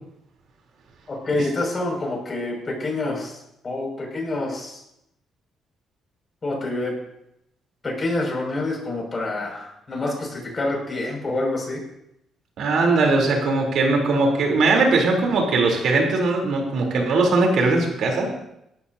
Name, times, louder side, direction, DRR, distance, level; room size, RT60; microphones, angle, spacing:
voice 1, 1.1-4.8 6.4-6.9 7.8-11.8, left 2 dB, 35° left, 0 dB, 6.1 m, -27 dB
voice 2, 12.6-18.3, right 3 dB, 70° right, 0 dB, 3.5 m, -20 dB
17.5 x 13.5 x 2.8 m, 0.81 s
cardioid pair, 90°, 0 cm